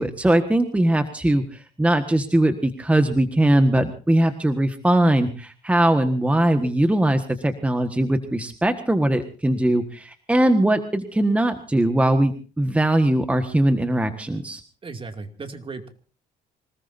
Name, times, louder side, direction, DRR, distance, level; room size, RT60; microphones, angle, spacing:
voice 1, 0.0-14.6, right 1 dB, 10° right, 7 dB, 1.5 m, -20 dB
voice 2, 14.8-15.9, right 3 dB, 30° right, 6 dB, 2.5 m, -36 dB
26.5 x 19.0 x 2.7 m, 0.38 s
cardioid pair, 110°, 17 cm